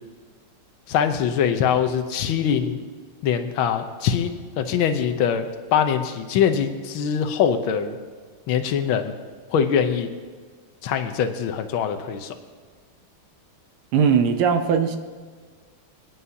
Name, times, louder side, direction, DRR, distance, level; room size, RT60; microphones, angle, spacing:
voice 1, 0.9-2.8 3.2-8.0 8.5-9.1 9.5-10.1 10.8-12.3, left 8 dB, 70° left, 7 dB, 1.6 m, -23 dB
voice 2, 13.9-15.0, right 6 dB, 80° right, 6 dB, 1.7 m, -19 dB
26.5 x 9.4 x 2.8 m, 1.5 s
omnidirectional pair, 2.4 m